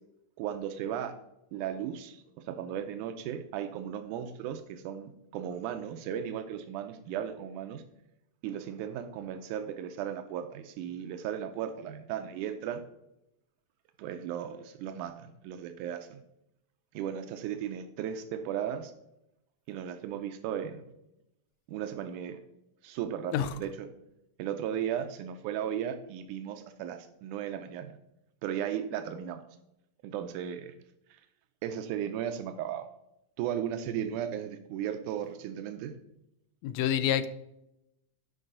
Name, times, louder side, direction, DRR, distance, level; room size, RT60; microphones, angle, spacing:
voice 1, 0.4-1.1 1.5-7.8 8.4-12.8 14.0-16.2 16.9-18.9 19.7-20.8 21.7-22.4 22.8-23.9 24.4-28.0 28.4-29.4 30.0-30.7 31.6-32.9 33.4-36.0, right 9 dB, 90° right, 8 dB, 2.2 m, -36 dB
voice 2, 36.6-37.3, left 10 dB, 85° left, 11 dB, 1.6 m, -27 dB
12.0 x 5.5 x 3.8 m, 0.83 s
omnidirectional pair, 3.6 m